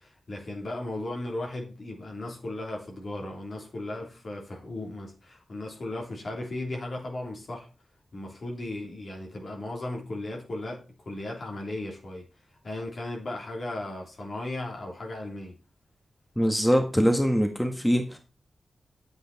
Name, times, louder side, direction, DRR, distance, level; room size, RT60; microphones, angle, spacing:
voice 1, 0.0-7.7 8.1-10.8 11.0-12.2 12.6-15.5, left 1 dB, 60° left, 3.1 m, -36 dB
voice 2, 16.4-18.2, equal, 5° left, 1.5 m, -23 dB
8.4 x 7.9 x 4.1 m
cardioid pair, 75°, 0 cm